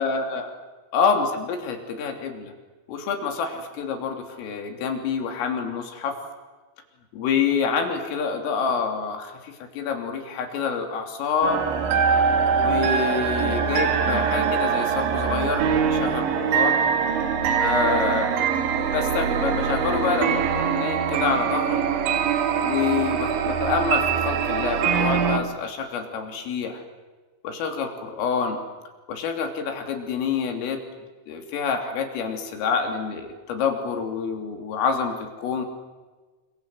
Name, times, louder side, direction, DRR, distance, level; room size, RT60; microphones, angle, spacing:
voice 1, 0.0-0.5 0.9-2.5 2.9-6.2 7.1-11.6 12.6-16.8 17.6-18.3 18.9-21.9 22.6-26.8 27.4-28.6 29.1-30.8 31.3-35.7, left 5 dB, 85° left, 5 dB, 5.8 m, -27 dB
sound 1, 11.4-25.4, right 7 dB, 70° right, 4.3 m, -23 dB
28.5 x 26.5 x 7.9 m, 1.3 s
omnidirectional pair, 5.8 m